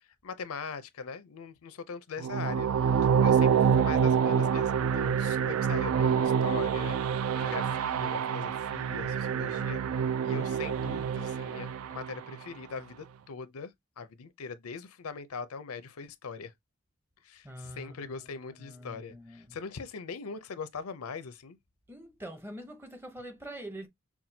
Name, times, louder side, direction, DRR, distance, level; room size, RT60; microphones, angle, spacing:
voice 1, 0.2-2.7 3.2-16.5 17.2-21.6, left 5 dB, 85° left, 0.6 m, -41 dB
sound 1, 2.2-12.3, right 7 dB, 80° right, 0.4 m, -27 dB
voice 2, 17.4-19.6 21.9-23.9, right 1 dB, 10° right, 0.7 m, -45 dB
5.9 x 2.3 x 2.7 m
head